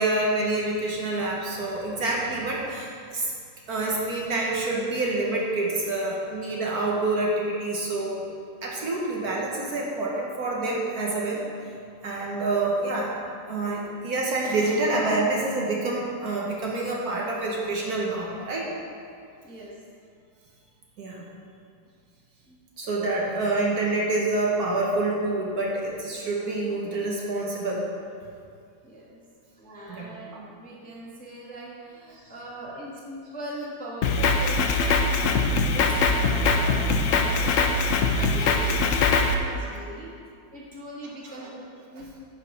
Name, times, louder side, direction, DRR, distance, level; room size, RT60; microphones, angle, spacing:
voice 1, 0.0-3.3 3.7-8.2 8.6-11.4 12.0-13.1 13.4-18.7 21.0-21.2 22.8-27.8 29.9-30.1 41.3-41.5, right 2 dB, 55° right, -3 dB, 1.4 m, -27 dB
voice 2, 28.8-29.2 29.6-40.1 40.5-41.6 41.9-42.1, right 1 dB, 5° left, -5 dB, 0.9 m, -39 dB
Drum kit, 34.0-39.3, left 3 dB, 85° left, 0.7 m, -22 dB
10.5 x 5.1 x 4.8 m, 2.3 s
omnidirectional pair, 2.1 m